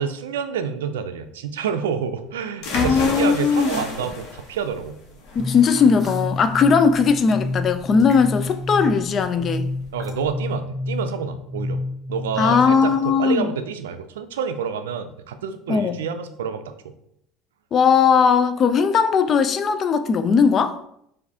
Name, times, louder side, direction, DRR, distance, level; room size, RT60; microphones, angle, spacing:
voice 1, 0.0-5.0 9.9-11.8 12.1-16.6, right 7 dB, 90° right, 9 dB, 0.4 m, -28 dB
sound 1, 2.2-2.4 4.0-4.2 6.0-6.3 8.0-8.3 10.0-10.2, equal, ahead, 1.6 m, -41 dB
sound 2, 2.6-10.3, left 2 dB, 70° left, 1.1 m, -34 dB
voice 2, 2.7-3.9 5.4-9.7 12.4-13.5 15.7-16.0 17.7-20.8, left 6 dB, 40° left, 10 dB, 0.4 m, -18 dB
sound 3, 5.4-12.9, left 2 dB, 35° right, 1.1 m, -30 dB
4.7 x 2.6 x 3.4 m, 0.73 s
hypercardioid pair, 80°, 0 cm